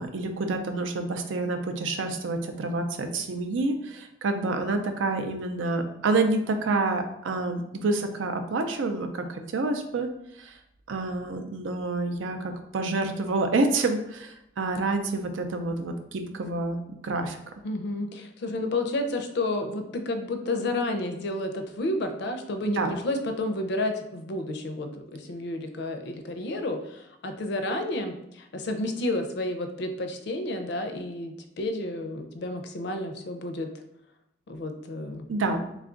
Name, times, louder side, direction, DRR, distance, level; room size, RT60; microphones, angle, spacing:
voice 1, 0.0-10.1 10.4-10.6 10.9-17.4 22.8-22.9 35.3-35.6, right 3 dB, 85° right, 6 dB, 0.5 m, -28 dB
voice 2, 17.6-33.7 34.5-35.3, left 2 dB, 60° left, 6 dB, 0.5 m, -31 dB
3.3 x 2.3 x 3.7 m, 0.81 s
head